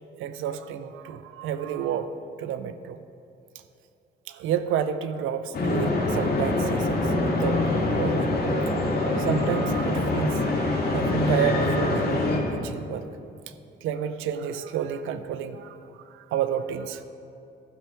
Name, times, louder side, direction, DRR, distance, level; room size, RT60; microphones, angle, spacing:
voice 1, 0.1-2.1 2.4-3.0 4.3-13.1 13.8-17.0, right 8 dB, 85° right, 10 dB, 0.5 m, -31 dB
sound 1, 5.5-12.4, left 2 dB, 50° left, 2.0 m, -24 dB
14.5 x 5.7 x 4.4 m, 2.6 s
cardioid pair, 90°, 20 cm